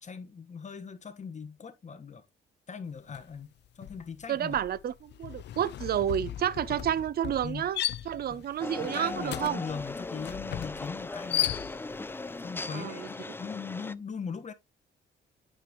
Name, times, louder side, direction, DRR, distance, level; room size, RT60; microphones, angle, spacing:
voice 1, 0.0-2.2 2.7-4.5 7.4-7.7 8.3-8.4 8.8-11.7 12.4-14.5, left 6 dB, 35° left, 1.3 m, -40 dB
sound 1, 3.1-3.4 3.7-12.1, left 12 dB, 60° left, 0.5 m, -36 dB
voice 2, 4.3-7.8 8.1-9.6 12.7-13.1, right 10 dB, 50° right, 0.6 m, -30 dB
sound 2, 8.6-13.9, left 3 dB, 10° left, 0.4 m, -38 dB
8.9 x 5.2 x 3.0 m
cardioid pair, 90°, 20 cm